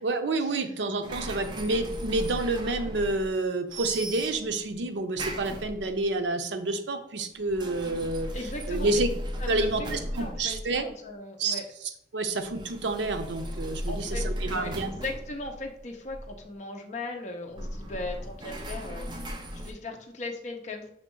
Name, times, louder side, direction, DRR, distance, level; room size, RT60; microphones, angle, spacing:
voice 1, 0.0-8.3 8.7-9.1 9.5-10.9 11.4-11.6 12.1-14.9, right 2 dB, 75° right, 7 dB, 0.6 m, -29 dB
sound 1, 1.0-3.4 3.7-4.6 5.1-6.1 7.3-11.0 12.4-16.4 17.5-19.7, equal, 25° right, 0.5 m, -36 dB
voice 2, 8.3-8.9 9.4-11.7 13.9-19.2 19.5-20.9, left 2 dB, 40° left, 3 dB, 0.6 m, -38 dB
5.8 x 2.4 x 3.7 m, 0.72 s
head